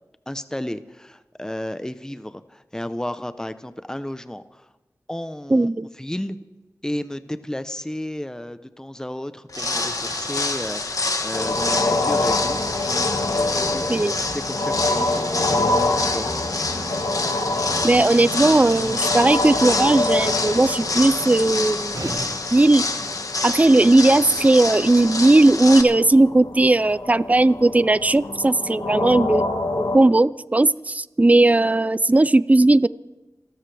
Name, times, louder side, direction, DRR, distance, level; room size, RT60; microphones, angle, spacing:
voice 1, 0.3-4.7 5.1-5.7 6.0-6.4 6.8-12.8 13.3-16.3, left 1 dB, 10° left, 12 dB, 0.8 m, -33 dB
voice 2, 5.5-5.9 13.9-14.1 17.8-22.0 22.5-22.8 23.4-29.4 29.8-32.9, right 2 dB, 20° right, 18 dB, 0.4 m, -17 dB
sound 1, 9.5-25.8, left 3 dB, 60° left, 1.3 m, -27 dB
sound 2, 9.5-22.1, right 1 dB, 85° right, 7.7 m, -38 dB
sound 3, 11.3-30.0, left 2 dB, 80° left, 1.7 m, -27 dB
28.5 x 14.0 x 3.4 m, 1.1 s
wide cardioid pair, 45°, 7 cm